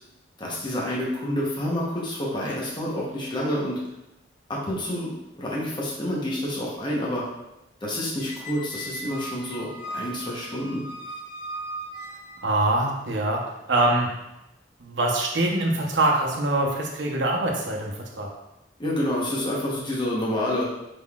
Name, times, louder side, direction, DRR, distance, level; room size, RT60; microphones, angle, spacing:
voice 1, 0.4-3.8 4.5-5.1 5.4-7.2 7.8-10.9 18.8-20.7, left 1 dB, 25° left, -4 dB, 1.0 m, -28 dB
Squeak, 8.2-12.7, right 1 dB, 75° left, 0.5 m, -38 dB
voice 2, 12.4-13.4 13.7-14.1 14.8-18.3, right 2 dB, 80° right, 0 dB, 0.9 m, -24 dB
5.1 x 3.8 x 2.4 m, 0.90 s
head